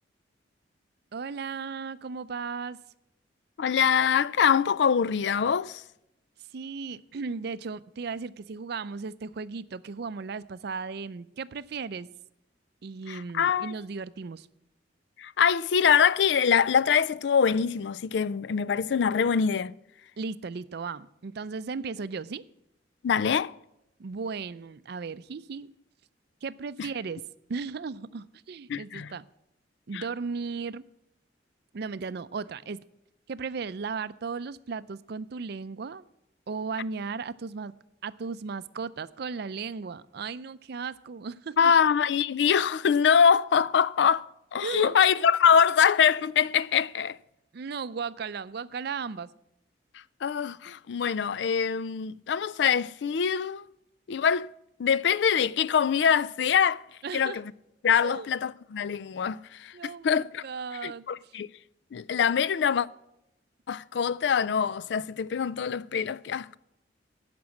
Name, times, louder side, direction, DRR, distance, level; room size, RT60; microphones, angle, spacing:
voice 1, 1.1-2.8 6.5-12.1 12.8-14.5 20.2-22.4 24.0-25.7 26.4-27.2 27.5-29.3 29.9-30.8 31.7-32.8 33.3-36.0 36.5-37.7 38.0-41.6 44.6-45.0 47.5-49.3 57.0-57.4 58.0-58.3 59.7-61.3, right 5 dB, 60° right, 0.5 m, -36 dB
voice 2, 3.6-5.8 13.1-13.7 15.2-19.7 23.0-23.5 26.8-26.9 28.7-29.1 29.9-30.0 41.6-44.3 44.5-47.2 50.2-53.6 54.1-54.5 54.8-56.8 57.1-57.5 57.8-60.4 60.8-61.5 61.9-62.9 63.7-66.6, left 7 dB, 65° left, 0.4 m, -24 dB
16.0 x 6.1 x 7.2 m
head